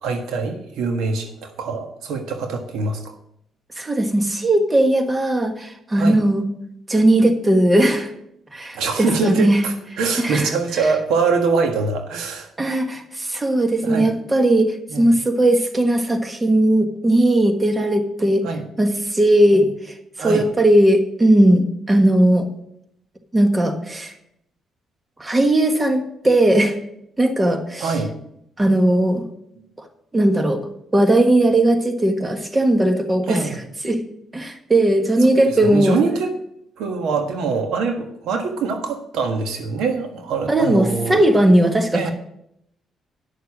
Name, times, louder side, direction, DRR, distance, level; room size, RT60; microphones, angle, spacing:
voice 1, 0.0-3.1 6.0-6.2 8.7-12.5 13.8-14.1 14.9-15.2 18.4-18.6 19.5-19.7 20.2-20.5 27.8-28.1 33.3-33.6 35.6-36.3 36.8-41.2 41.9-42.1, right 4 dB, 85° right, 5 dB, 1.5 m, -24 dB
voice 2, 3.8-6.4 6.9-8.1 8.5-9.6 10.2-10.5 12.6-18.4 18.8-22.5 23.3-24.1 25.2-26.8 27.2-27.9 28.6-29.2 30.1-30.6 30.9-34.0 34.3-36.0 40.5-42.1, right 1 dB, 20° right, 6 dB, 1.4 m, -18 dB
10.5 x 6.7 x 6.0 m, 0.75 s
cardioid pair, 90°, 0 cm